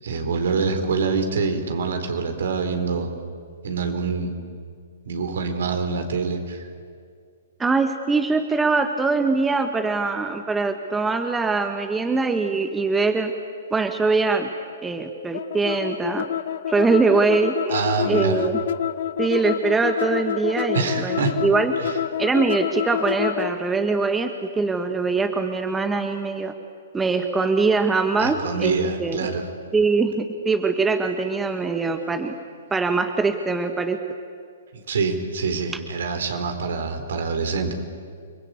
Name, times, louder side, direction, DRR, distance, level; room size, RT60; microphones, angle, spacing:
voice 1, 0.0-3.1 3.6-4.4 5.1-6.6 17.7-18.4 20.7-21.3 28.2-29.5 34.7-37.7, right 4 dB, 65° right, 6 dB, 4.3 m, -25 dB
voice 2, 7.6-13.3 13.7-14.5 14.8-16.3 16.7-18.6 19.2-21.7 22.2-26.5 26.9-29.3 29.7-32.4 32.7-34.0, right 4 dB, 10° right, 6 dB, 1.5 m, -22 dB
sound 1, 15.3-23.6, left 10 dB, 60° left, 0.9 m, -27 dB
29.5 x 21.5 x 8.4 m, 2.2 s
figure-of-eight pair, 120°, 0 cm